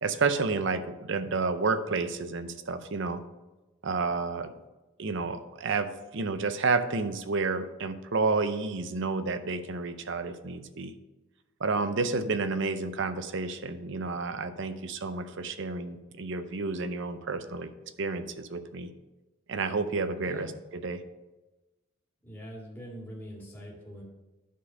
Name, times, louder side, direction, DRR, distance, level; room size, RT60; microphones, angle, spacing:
voice 1, 0.0-3.2 3.8-4.5 5.0-10.9 11.6-17.7 18.0-18.9 19.5-21.0, right 4 dB, 55° right, 10 dB, 0.6 m, -30 dB
voice 2, 22.2-24.0, equal, 10° left, -5 dB, 1.9 m, -43 dB
10.5 x 4.2 x 5.4 m, 1.1 s
head